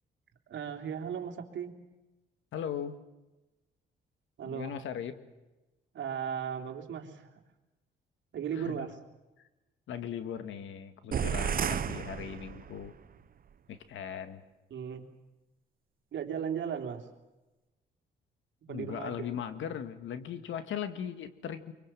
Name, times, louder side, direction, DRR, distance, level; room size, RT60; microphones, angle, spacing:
voice 1, 0.5-1.7 4.4-4.7 5.9-7.3 8.3-8.9 14.7-15.1 16.1-17.1 18.7-19.3, right 8 dB, 70° right, 4 dB, 3.4 m, -36 dB
voice 2, 2.5-3.0 4.5-5.1 8.6-8.9 9.9-12.9 13.7-14.4 18.7-21.7, left 8 dB, 75° left, 10 dB, 2.0 m, -38 dB
sound 1, 11.1-13.0, right 7 dB, 45° right, 0.9 m, -32 dB
24.0 x 24.0 x 7.7 m, 1.1 s
cardioid pair, 90°, 20 cm